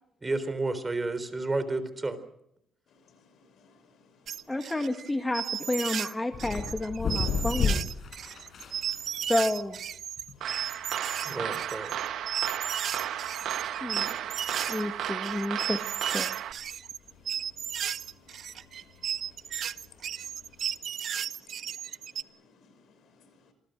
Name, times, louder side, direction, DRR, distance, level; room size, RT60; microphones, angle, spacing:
voice 1, 0.2-2.2 11.3-11.9, right 2 dB, 25° right, 3.8 m, -31 dB
voice 2, 2.9-4.6 8.4-9.3 10.3-11.6 12.7-14.0 14.5-14.8 17.0-23.5, left 4 dB, 70° left, 6.1 m, -59 dB
sound 1, 4.3-6.1 6.4-22.2, right 9 dB, 65° right, 0.8 m, -34 dB
voice 3, 4.5-7.9 9.3-9.8 13.8-14.1 14.7-16.3, left 1 dB, 15° left, 1.9 m, -30 dB
sound 2, 6.3-20.7, left 5 dB, 55° left, 7.2 m, -37 dB
sound 3, 10.4-16.5, right 10 dB, 80° right, 1.7 m, -34 dB
27.5 x 20.0 x 6.5 m
cardioid pair, 90°, 0 cm